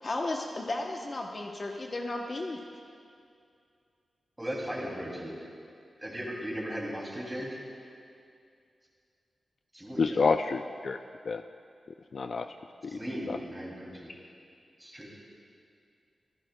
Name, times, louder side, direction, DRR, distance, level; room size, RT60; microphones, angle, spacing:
voice 1, 0.0-2.6 4.8-4.9, left 2 dB, 35° left, 0 dB, 0.8 m, -34 dB
voice 2, 4.4-5.4 6.0-7.6 9.7-10.2 12.9-14.1 14.8-15.1, equal, 10° right, -3 dB, 2.6 m, -37 dB
voice 3, 10.0-11.0 11.3-11.4 12.1-12.5 12.8-13.0 13.3-13.4, left 4 dB, 50° left, 7 dB, 0.3 m, -28 dB
24.5 x 16.0 x 2.2 m, 2.4 s
wide cardioid pair, 170°, 0 cm